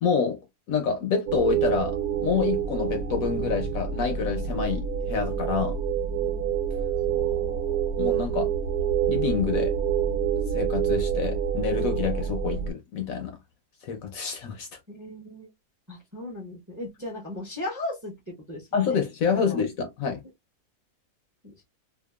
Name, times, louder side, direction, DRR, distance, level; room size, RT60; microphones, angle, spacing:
voice 1, 0.0-0.4 0.7-2.0 2.2-5.8 8.0-8.5 9.1-9.7 10.5-13.4 13.8-14.7 18.7-20.2, left 6 dB, 65° left, 1.0 m, -27 dB
sound 1, 1.3-12.7, right 8 dB, 75° right, 1.1 m, -27 dB
voice 2, 7.1-8.0 8.3-8.5 14.9-15.5 15.9-19.0 19.3-19.6, left 1 dB, 15° right, 0.8 m, -37 dB
2.8 x 2.3 x 2.2 m
omnidirectional pair, 1.7 m